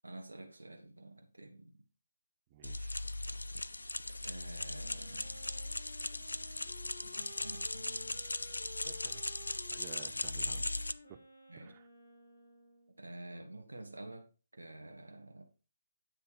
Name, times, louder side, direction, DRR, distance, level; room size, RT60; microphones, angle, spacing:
voice 1, 0.0-1.8 4.2-5.4 7.0-8.3 11.5-11.7 13.0-14.3 14.5-15.4, right 2 dB, 80° right, 1.2 m, -49 dB
voice 2, 2.5-3.0 8.8-9.2 9.7-10.6 11.1-11.2 11.6-11.9, right 9 dB, 30° right, 0.6 m, -52 dB
sound 1, 2.6-10.9, left 2 dB, 85° left, 0.4 m, -38 dB
Wind instrument woodwind instrument, 4.6-13.0, left 2 dB, 45° left, 2.7 m, -55 dB
9.3 x 3.2 x 4.7 m
figure-of-eight pair, 145°, 0 cm